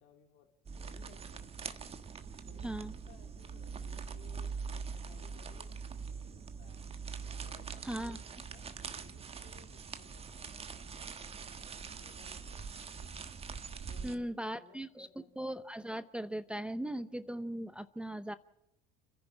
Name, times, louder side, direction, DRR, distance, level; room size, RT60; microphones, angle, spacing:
voice 1, 0.0-1.8 2.4-2.7 3.1-4.5 4.9-6.8 7.4-13.2 13.9-15.4, left 8 dB, 65° left, 4 dB, 3.1 m, -62 dB
sound 1, 0.6-14.2, right 5 dB, 30° right, 1.4 m, -43 dB
voice 2, 2.6-2.9 7.8-8.2 14.0-15.1 15.4-18.3, right 1 dB, 5° right, 12 dB, 0.7 m, -38 dB
29.5 x 10.5 x 8.6 m, 0.85 s
hypercardioid pair, 75°, 20 cm